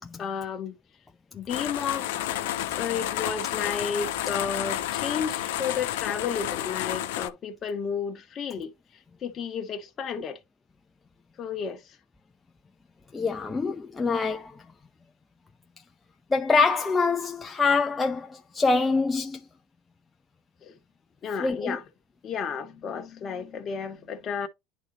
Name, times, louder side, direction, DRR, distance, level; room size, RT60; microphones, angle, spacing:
voice 1, 0.2-0.7 1.3-2.1 2.7-8.7 9.2-10.4 11.4-12.0 20.6-20.8 21.2-21.8 22.2-24.5, left 6 dB, 35° left, 1.7 m, -32 dB
sound 1, 1.5-7.3, left 13 dB, 80° left, 1.0 m, -30 dB
voice 2, 13.1-14.5 16.3-19.4 21.4-21.8, left 4 dB, 15° left, 0.7 m, -25 dB
11.0 x 4.0 x 3.1 m
supercardioid pair, 115°, 0 cm